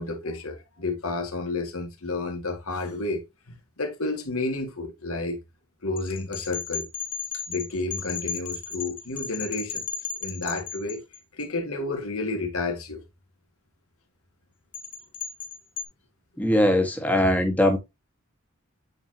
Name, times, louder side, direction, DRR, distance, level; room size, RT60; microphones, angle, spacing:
voice 1, 0.0-5.4 5.8-6.9 7.5-9.9 10.2-11.0 11.4-13.0 17.2-17.4, left 2 dB, 85° left, 1.9 m, -31 dB
sound 1, 6.0-11.4 14.7-15.9, left 7 dB, 35° left, 1.4 m, -35 dB
voice 2, 16.4-17.8, left 1 dB, 5° left, 1.5 m, -21 dB
8.6 x 4.7 x 2.8 m
head